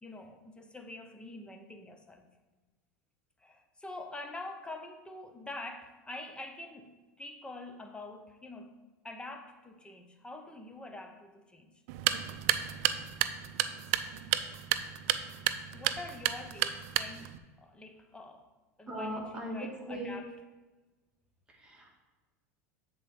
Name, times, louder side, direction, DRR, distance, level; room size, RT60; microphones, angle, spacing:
voice 1, 0.0-2.3 3.4-8.7 9.0-11.8 15.7-18.5 18.8-20.3, left 2 dB, 10° left, 5 dB, 0.9 m, -46 dB
sound 1, 11.9-17.4, right 12 dB, 65° right, 0.5 m, -32 dB
voice 2, 18.9-20.2 21.5-21.9, equal, 10° right, -2 dB, 2.1 m, -39 dB
7.3 x 4.2 x 6.5 m, 1.2 s
hypercardioid pair, 95°, 8 cm